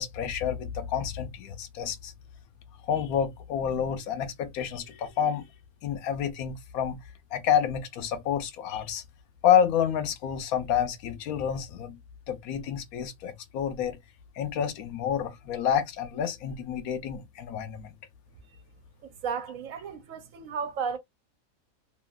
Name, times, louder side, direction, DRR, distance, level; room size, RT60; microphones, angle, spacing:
voice 1, 0.0-2.1 2.9-5.5 5.8-7.0 7.3-9.0 9.4-12.0 12.3-14.0 14.4-17.9, left 8 dB, 85° left, 1.1 m, -28 dB
voice 2, 19.0-21.0, right 6 dB, 70° right, 1.0 m, -34 dB
3.0 x 2.7 x 2.3 m
omnidirectional pair, 1.5 m